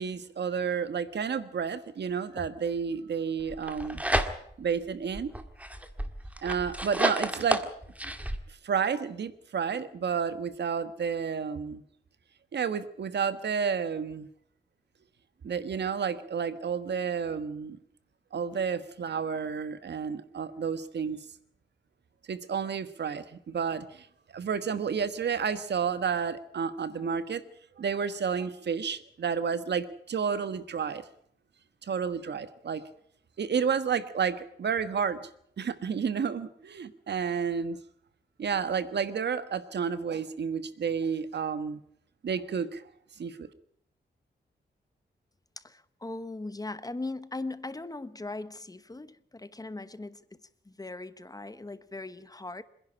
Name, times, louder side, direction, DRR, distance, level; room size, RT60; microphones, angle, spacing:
voice 1, 0.0-4.0 4.6-5.3 6.4-7.7 8.5-11.8 12.5-14.3 15.4-17.8 18.3-21.2 22.3-27.4 27.8-31.0 31.8-32.8 33.4-35.3 35.6-37.8 38.4-41.8 42.2-42.8 43.2-43.5, right 6 dB, 70° right, 1.4 m, -31 dB
sound 1, 3.5-4.7 5.1-8.4, right 1 dB, 10° right, 1.8 m, -31 dB
voice 2, 45.6-50.3 50.6-52.6, left 2 dB, 20° left, 1.0 m, -39 dB
26.5 x 10.5 x 9.8 m
wide cardioid pair, 95°, 18 cm